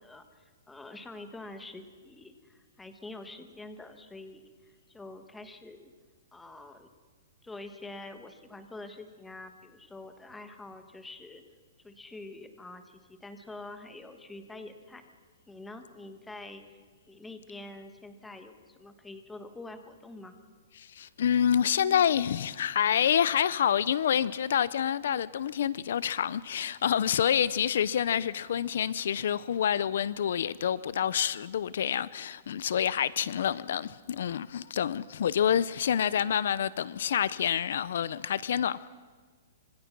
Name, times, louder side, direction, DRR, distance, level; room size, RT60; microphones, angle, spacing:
voice 1, 0.0-4.4 4.9-5.9 6.3-6.9 7.4-11.4 11.8-15.1 15.5-16.6 17.1-20.4, left 2 dB, 5° left, 1.4 m, -46 dB
voice 2, 20.8-38.9, left 9 dB, 60° left, 0.6 m, -27 dB
25.5 x 24.0 x 6.1 m
hypercardioid pair, 170°, 0 cm